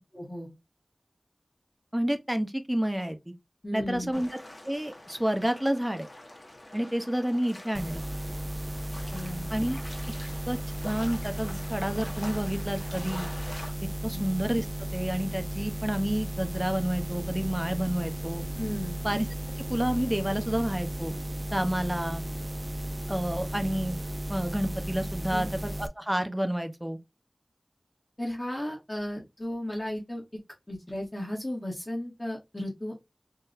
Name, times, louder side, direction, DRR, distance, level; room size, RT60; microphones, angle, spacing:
voice 1, 0.1-0.5 3.6-4.1 9.1-9.5 14.1-14.2 18.5-19.0 25.3-25.5 28.2-30.2 30.7-33.0, left 1 dB, 30° left, 1.6 m, -35 dB
voice 2, 1.9-3.3 3.7-4.3 4.7-6.1 6.7-8.0 9.5-9.8 10.5-10.6 10.8-13.2 14.0-18.4 19.0-19.3 19.6-21.2 21.5-22.2 23.1-24.0 24.3-27.0, equal, 15° right, 0.8 m, -29 dB
sound 1, 4.1-13.7, left 1 dB, 50° left, 1.2 m, -45 dB
sound 2, 7.7-25.9, right 1 dB, 35° right, 0.4 m, -35 dB
sound 3, 17.0-24.5, right 1 dB, 70° right, 1.5 m, -52 dB
3.8 x 2.7 x 2.5 m
wide cardioid pair, 50°, 0 cm